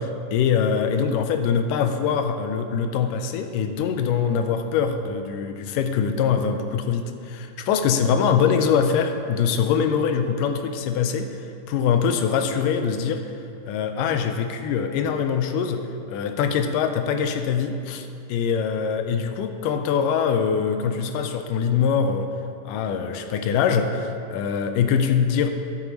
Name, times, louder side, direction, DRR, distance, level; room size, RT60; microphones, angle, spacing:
voice 1, 0.0-13.3 13.6-22.3 22.6-25.5, left 6 dB, 85° left, 7 dB, 2.2 m, -23 dB
13.5 x 7.0 x 3.0 m, 2.5 s
omnidirectional pair, 3.7 m